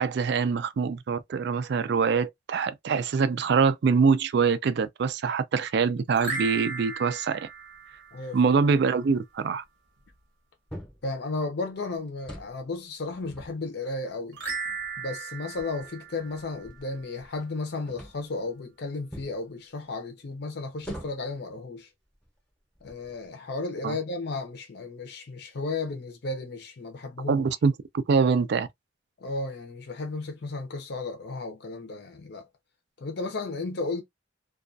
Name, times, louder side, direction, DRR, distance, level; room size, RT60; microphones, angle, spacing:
voice 1, 0.0-7.5 8.3-9.6 23.8-24.0 27.3-28.7, right 5 dB, 60° right, 0.3 m, -24 dB
sound 1, 6.1-8.6 14.3-17.0, right 4 dB, 80° right, 0.8 m, -36 dB
voice 2, 8.1-8.5 11.0-14.4 15.0-21.9 22.8-27.5 29.2-32.5 33.0-34.0, left 3 dB, 60° left, 0.5 m, -34 dB
sound 2, 10.7-11.1 12.1-12.6 13.1-14.1 14.9-15.0 15.5-17.5 17.9-18.4 19.1-19.4 20.8-21.4 22.1-22.3 22.8-23.3, equal, 5° left, 0.7 m, -44 dB
2.3 x 2.2 x 2.5 m
head